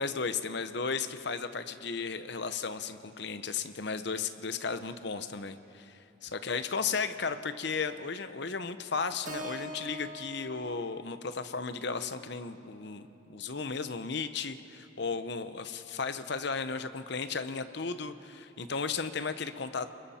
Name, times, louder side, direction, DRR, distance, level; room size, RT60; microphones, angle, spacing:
voice 1, 0.0-19.9, left 5 dB, 55° left, 10 dB, 0.9 m, -35 dB
Keyboard (musical), 9.3-13.5, right 1 dB, 40° right, 1.3 m, -46 dB
30.0 x 22.0 x 4.3 m, 2.8 s
head